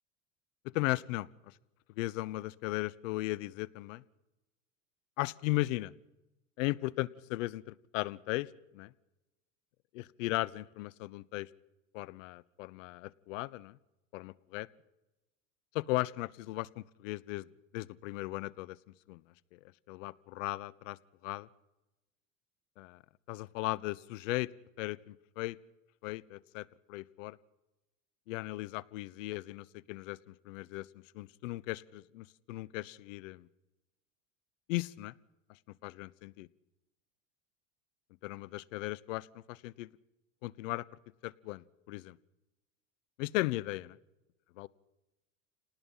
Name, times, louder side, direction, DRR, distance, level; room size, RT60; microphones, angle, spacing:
voice 1, 0.7-1.3 2.0-4.0 5.2-5.9 6.6-8.9 9.9-11.5 11.9-13.8 14.1-14.7 15.7-17.5 17.7-18.8 19.1-19.2 19.5-19.6 19.9-21.0 21.2-21.5 22.8-23.0 23.3-24.5 24.8-25.6 26.0-27.4 28.3-30.9 31.1-33.5 34.7-35.1 35.8-36.5 38.2-39.9 40.4-40.9 41.2-42.2 43.2-44.0 44.6-44.7, left 19 dB, 70° left, 21 dB, 1.0 m, -37 dB
29.0 x 19.0 x 5.6 m, 0.98 s
hypercardioid pair, 90°, 39 cm